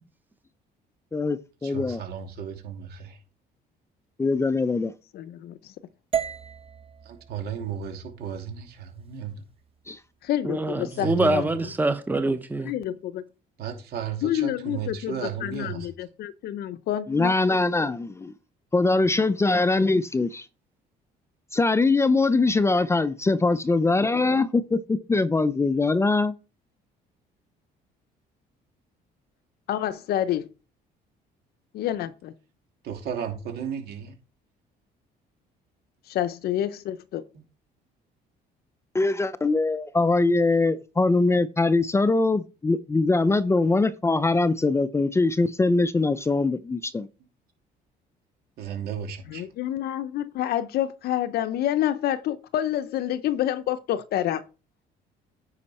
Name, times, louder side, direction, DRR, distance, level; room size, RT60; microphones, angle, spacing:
voice 1, 1.1-2.0 4.2-4.9 9.9-10.0 17.1-18.3 18.7-20.5 21.5-26.3 38.9-47.1, left 3 dB, 15° left, 0.5 m, -22 dB
voice 2, 1.6-3.2 7.0-9.4 10.9-11.4 13.6-15.9 32.8-34.2 37.3-37.4 48.6-49.5, right 7 dB, 70° right, 2.8 m, -34 dB
voice 3, 5.1-5.7 10.2-11.5 12.6-13.2 14.2-17.6 29.7-30.5 31.7-32.3 36.1-37.2 49.3-54.4, left 12 dB, 70° left, 0.7 m, -28 dB
sound 1, 6.1-10.3, right 8 dB, 35° right, 1.0 m, -36 dB
voice 4, 10.4-12.7, right 2 dB, 10° right, 0.9 m, -25 dB
9.6 x 5.7 x 4.3 m
cardioid pair, 110°, 17 cm